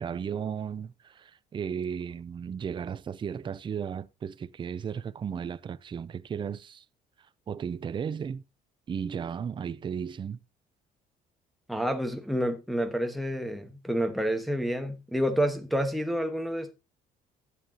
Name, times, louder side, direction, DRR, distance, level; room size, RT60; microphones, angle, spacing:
voice 1, 0.0-6.8 7.5-8.4 8.9-10.4, right 7 dB, 30° right, 0.4 m, -35 dB
voice 2, 11.7-16.7, equal, ahead, 1.2 m, -29 dB
13.0 x 9.3 x 2.8 m
cardioid pair, 110°, 17 cm